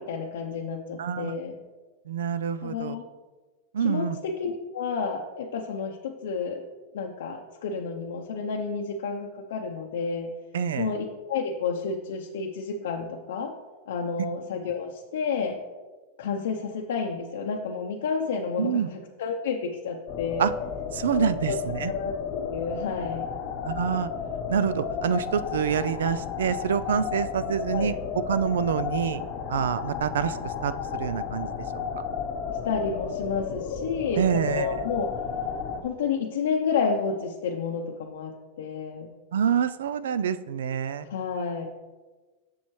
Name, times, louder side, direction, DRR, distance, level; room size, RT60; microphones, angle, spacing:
voice 1, 0.0-1.5 2.6-3.0 3.8-6.6 6.9-10.3 10.8-13.5 13.9-15.6 16.2-20.4 21.2-23.3 27.7-27.9 32.6-35.1 35.8-39.1 41.0-41.7, left 5 dB, 85° left, 1 dB, 0.6 m, -30 dB
voice 2, 1.0-1.3 2.1-3.0 3.7-4.2 10.5-10.9 18.6-18.9 20.4-20.5 20.9-21.9 23.6-24.1 24.5-27.9 28.3-29.2 29.5-31.5 31.7-31.8 34.2-34.8 39.3-41.1, right 8 dB, 90° right, 14 dB, 0.4 m, -26 dB
sound 1, 20.1-35.8, left 6 dB, 50° left, 0.8 m, -33 dB
7.3 x 7.0 x 3.1 m, 1.3 s
supercardioid pair, 130°, 0 cm